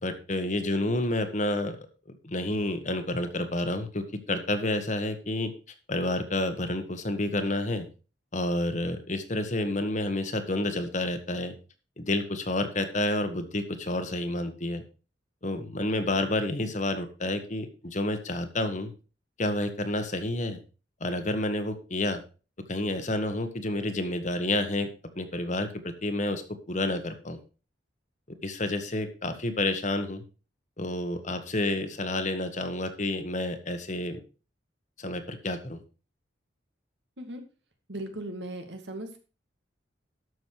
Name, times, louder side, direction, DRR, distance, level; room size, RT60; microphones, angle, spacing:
voice 1, 0.0-1.8 2.2-5.5 5.9-7.9 8.3-11.5 12.0-14.8 15.4-18.9 19.4-20.6 21.0-22.2 22.7-24.9 25.1-26.4 26.7-27.4 28.4-30.2 30.8-34.2 35.0-35.8, left 1 dB, 40° left, 8 dB, 1.4 m, -29 dB
voice 2, 37.9-39.2, right 1 dB, 70° right, 6 dB, 2.1 m, -37 dB
12.5 x 6.4 x 4.7 m, 0.34 s
head